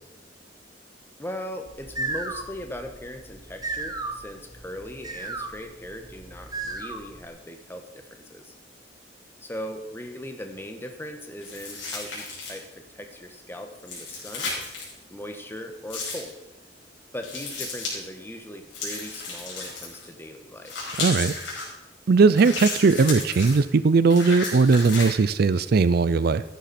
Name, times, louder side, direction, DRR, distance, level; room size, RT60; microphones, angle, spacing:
voice 1, 1.2-8.5 9.4-14.5 15.1-16.4 17.1-20.7, left 1 dB, 15° left, 5 dB, 1.3 m, -39 dB
sound 1, 1.7-7.3, right 2 dB, 20° right, 1.0 m, -35 dB
sound 2, 11.4-12.7 13.8-14.9 15.9-16.3 17.2-18.0 18.7-20.1 20.6-21.7 22.3-23.6 24.1-25.1, left 3 dB, 90° left, 5.4 m, -33 dB
voice 2, 21.0-21.3 22.1-26.4, right 4 dB, 55° right, 15 dB, 0.4 m, -19 dB
13.5 x 10.0 x 4.3 m, 0.95 s
head